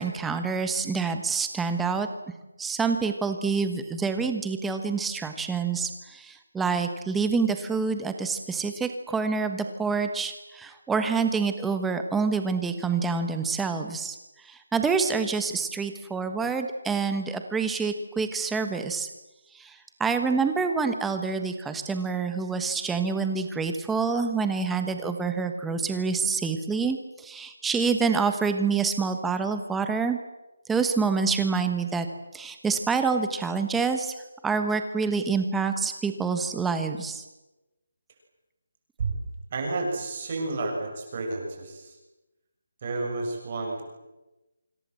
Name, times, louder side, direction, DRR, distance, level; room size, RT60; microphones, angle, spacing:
voice 1, 0.0-2.1 2.6-14.2 14.4-19.1 19.5-30.2 30.7-32.1 32.3-34.1 34.4-37.2, right 5 dB, 5° right, 7 dB, 1.2 m, -27 dB
voice 2, 39.5-42.0 42.8-43.8, right 3 dB, 25° right, 1 dB, 6.6 m, -31 dB
29.0 x 26.0 x 7.7 m, 1.0 s
hypercardioid pair, 180°, 0 cm